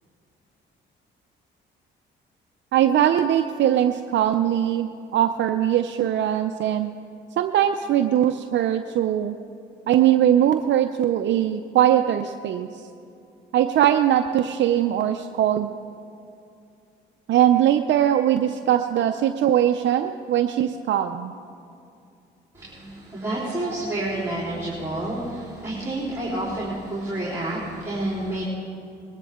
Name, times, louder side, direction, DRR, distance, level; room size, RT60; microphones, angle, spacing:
voice 1, 2.7-6.9 7.4-9.4 9.9-12.9 13.5-15.7 17.3-21.3 23.6-23.7, right 11 dB, 65° right, 7 dB, 0.5 m, -21 dB
voice 2, 22.6-28.4, right 1 dB, 15° right, -7 dB, 3.8 m, -29 dB
21.5 x 13.0 x 3.7 m, 2.6 s
cardioid pair, 90°, 20 cm